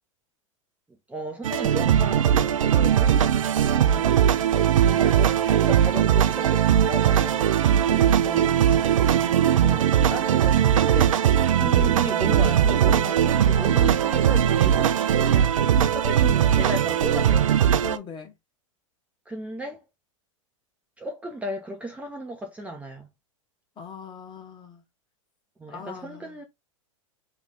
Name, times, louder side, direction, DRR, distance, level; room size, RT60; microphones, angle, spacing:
voice 1, 1.1-3.4 3.8-4.4 4.8-7.4 7.9-8.9 9.4-11.1 11.5-17.5 19.3-19.8 21.0-23.1 25.6-26.4, right 1 dB, 10° right, 0.7 m, -35 dB
sound 1, 1.4-18.0, right 9 dB, 75° right, 0.4 m, -20 dB
voice 2, 7.7-8.0 17.8-18.3 23.8-24.8 25.7-26.4, left 7 dB, 25° left, 1.4 m, -42 dB
3.2 x 3.1 x 3.7 m
hypercardioid pair, 100°, 17 cm